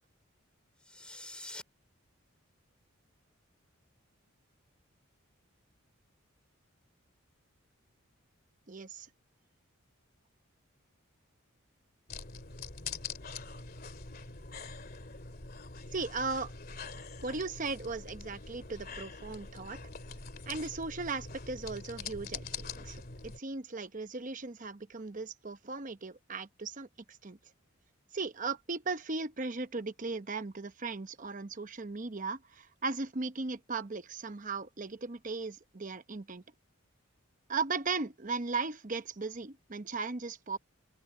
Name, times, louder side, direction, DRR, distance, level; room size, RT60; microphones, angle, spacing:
sound 1, 0.8-1.6, left 1 dB, 5° left, 1.9 m, -46 dB
voice 1, 8.7-9.1 15.9-16.5 17.2-19.8 20.5-27.4 28.1-36.4 37.5-40.6, right 4 dB, 40° right, 0.9 m, -37 dB
sound 2, 12.1-23.4, left 4 dB, 45° left, 2.6 m, -44 dB
open air
head